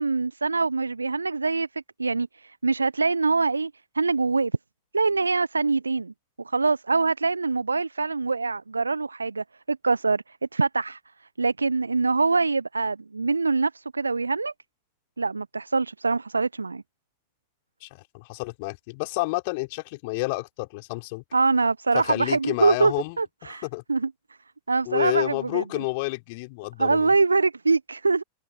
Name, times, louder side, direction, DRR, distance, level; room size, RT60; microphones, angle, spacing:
voice 1, 0.0-4.5 4.9-6.1 6.4-11.0 11.4-14.5 15.2-16.8 21.3-23.6 23.9-24.1 24.7-25.6 26.8-28.2, right 4 dB, 80° right, 1.2 m, -24 dB
voice 2, 17.8-21.2 21.9-23.2 23.4-23.8 24.9-27.1, left 26 dB, 50° left, 5.1 m, -29 dB
figure-of-eight pair, 90°, 0 cm